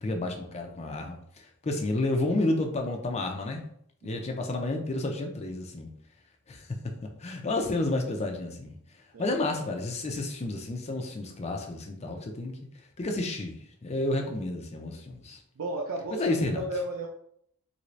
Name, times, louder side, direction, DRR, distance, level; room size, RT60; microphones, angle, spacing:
voice 1, 0.0-3.6 4.0-5.9 6.5-6.7 7.2-8.8 9.2-12.6 13.0-15.4 16.1-16.6, left 2 dB, 30° left, 3 dB, 0.4 m, -31 dB
voice 2, 15.6-17.1, right 1 dB, 80° right, -2 dB, 0.5 m, -34 dB
3.3 x 2.6 x 3.1 m, 0.68 s
head